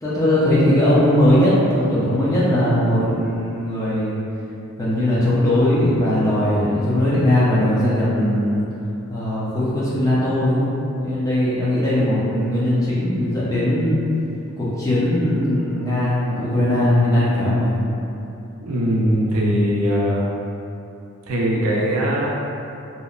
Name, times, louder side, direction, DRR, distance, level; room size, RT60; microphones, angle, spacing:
voice 1, 0.0-4.2 4.8-8.6 9.1-10.7 11.0-14.0 14.6-17.7, left 1 dB, 15° left, -9 dB, 0.4 m, -19 dB
voice 2, 18.6-20.2 21.3-22.3, equal, 80° right, -4 dB, 0.4 m, -20 dB
2.7 x 2.1 x 2.3 m, 2.8 s
head